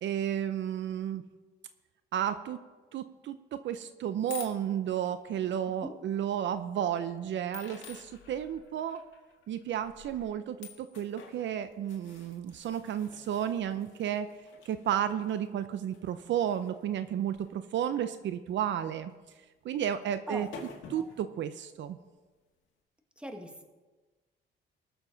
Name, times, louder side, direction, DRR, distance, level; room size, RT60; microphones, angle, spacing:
voice 1, 0.0-1.2 2.1-2.6 2.9-9.0 9.5-14.3 14.7-19.1 19.6-20.5 20.9-22.0, right 10 dB, 70° right, 11 dB, 0.6 m, -32 dB
sound 1, 4.3-5.1 6.0-6.1 7.5-18.0 18.5-18.7 20.0-20.1 20.3-21.3, left 6 dB, 75° left, 1.9 m, -50 dB
voice 2, 5.6-6.0 20.3-20.5 20.9-21.1 23.2-23.7, right 1 dB, 5° right, 5 dB, 1.6 m, -41 dB
21.0 x 7.0 x 3.9 m, 1.3 s
cardioid pair, 90°, 20 cm